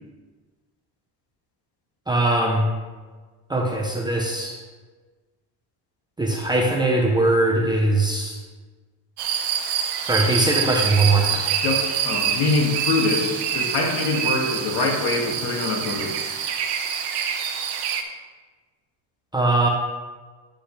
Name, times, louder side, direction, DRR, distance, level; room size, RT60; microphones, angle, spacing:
voice 1, 2.1-2.7 3.5-4.6 6.2-8.4 10.0-11.6 19.3-19.7, right 2 dB, 10° right, -1 dB, 0.8 m, -21 dB
sound 1, 9.2-18.0, right 8 dB, 65° right, 1.1 m, -26 dB
voice 2, 11.6-16.4, left 3 dB, 60° left, 0 dB, 2.3 m, -24 dB
9.9 x 8.2 x 3.4 m, 1.3 s
cardioid pair, 160°, 43 cm